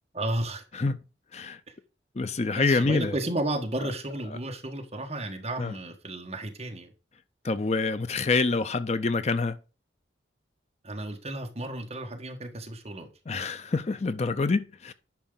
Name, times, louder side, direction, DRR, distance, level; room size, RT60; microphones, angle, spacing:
voice 1, 0.1-0.6 2.5-6.9 10.8-13.1, right 1 dB, 35° right, 1.5 m, -33 dB
voice 2, 2.2-3.1 5.6-5.7 7.4-9.6 13.3-14.9, left 3 dB, 35° left, 0.5 m, -26 dB
10.5 x 4.6 x 3.8 m
head